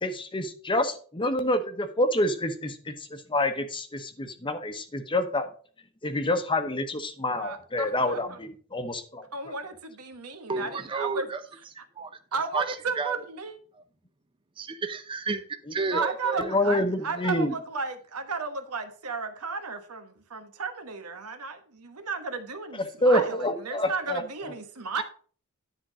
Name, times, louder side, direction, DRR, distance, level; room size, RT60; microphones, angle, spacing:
voice 1, 0.0-5.5 6.0-9.3 15.7-15.8 16.4-17.5 22.7-24.2, left 1 dB, 25° left, 0.9 m, -27 dB
voice 2, 7.3-8.4 9.3-11.3 12.3-13.6 15.9-25.0, right 4 dB, 90° right, 1.2 m, -34 dB
voice 3, 10.5-11.4 12.0-12.2 12.5-13.2 13.7-13.8 14.6-15.4 15.7-16.5, right 4 dB, 25° right, 0.6 m, -31 dB
10.5 x 3.7 x 6.1 m
head